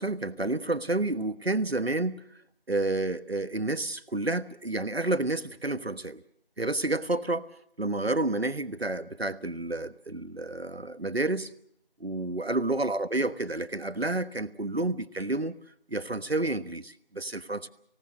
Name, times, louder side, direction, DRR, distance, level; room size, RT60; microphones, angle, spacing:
voice 1, 0.0-2.2 2.7-6.2 6.6-7.5 7.8-11.5 12.0-15.6 15.9-17.7, right 2 dB, 80° right, 13 dB, 1.3 m, -30 dB
25.5 x 18.0 x 7.7 m, 0.69 s
figure-of-eight pair, 180°, 31 cm